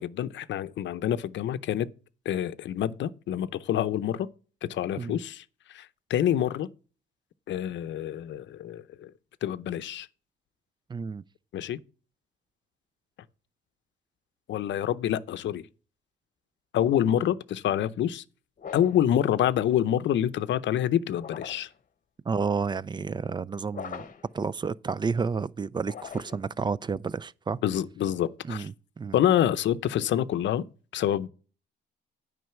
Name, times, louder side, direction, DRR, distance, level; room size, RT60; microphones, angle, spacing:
voice 1, 0.0-1.9 2.3-4.3 4.6-5.4 5.7-6.7 7.5-9.1 9.4-10.1 11.5-11.8 14.5-15.6 16.7-18.2 18.7-21.7 27.6-28.7 29.1-30.6 30.9-31.3, left 11 dB, 70° left, 0.7 m, -27 dB
voice 2, 10.9-11.2 22.3-24.1 24.3-27.6 28.4-29.2, right 5 dB, 25° right, 0.4 m, -31 dB
sound 1, 18.6-19.1 21.1-21.8 23.7-24.3 25.8-26.5, left 7 dB, 40° left, 0.9 m, -41 dB
9.4 x 5.3 x 5.8 m
cardioid pair, 90°, 20 cm